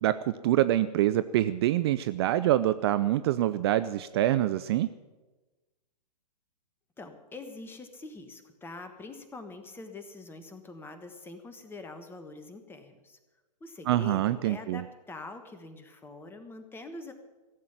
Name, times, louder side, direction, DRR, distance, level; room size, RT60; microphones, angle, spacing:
voice 1, 0.0-4.9 13.9-14.8, right 13 dB, 40° right, 14 dB, 0.4 m, -25 dB
voice 2, 7.0-13.2 13.6-17.1, left 3 dB, 10° left, 7 dB, 1.3 m, -44 dB
15.5 x 7.5 x 9.9 m, 1.2 s
figure-of-eight pair, 120°, 21 cm